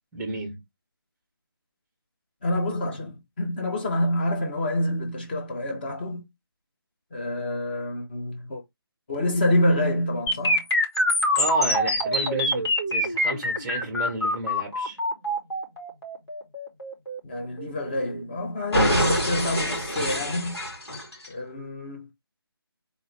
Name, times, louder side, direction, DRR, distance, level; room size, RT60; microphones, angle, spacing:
voice 1, 0.1-0.6 11.3-15.0, right 2 dB, 5° right, 0.8 m, -32 dB
voice 2, 2.4-6.2 7.1-8.6 9.1-10.6 17.2-20.6 21.3-22.1, left 1 dB, 25° left, 1.2 m, -27 dB
sound 1, 10.3-18.2 18.7-21.3, equal, 80° left, 3.1 m, -25 dB
4.1 x 3.8 x 3.4 m
figure-of-eight pair, 170°, 13 cm